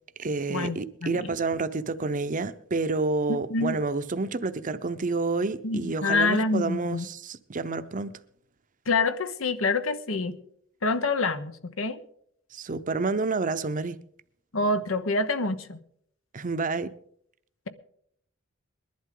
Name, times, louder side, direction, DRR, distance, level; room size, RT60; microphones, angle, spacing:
voice 1, 0.2-8.2 12.5-14.0 16.3-16.9, right 3 dB, 40° right, 0.7 m, -29 dB
voice 2, 1.0-1.4 3.5-3.8 5.6-7.1 8.9-10.4 10.8-12.0 14.5-15.8, left 3 dB, 85° left, 1.0 m, -26 dB
21.5 x 11.5 x 3.8 m
head